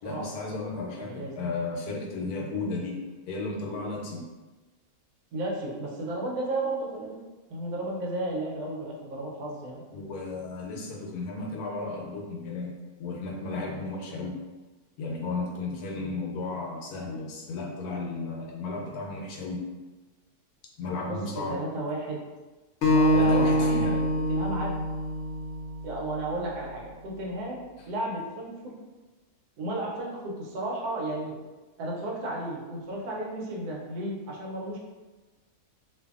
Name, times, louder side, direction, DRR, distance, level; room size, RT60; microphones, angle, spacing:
voice 1, 0.0-3.0 3.3-4.2 9.9-12.7 13.0-14.4 15.0-19.6 20.8-21.6 23.1-23.9, left 3 dB, 85° left, -1 dB, 1.1 m, -34 dB
voice 2, 0.9-1.3 5.3-7.2 7.5-9.8 21.0-22.2 22.8-24.8 25.8-28.7 29.6-31.3 31.8-34.8, right 1 dB, 85° right, -2 dB, 1.2 m, -33 dB
Acoustic guitar, 22.8-26.1, equal, 65° left, 0.7 m, -25 dB
2.6 x 2.5 x 2.4 m, 1.2 s
omnidirectional pair, 1.6 m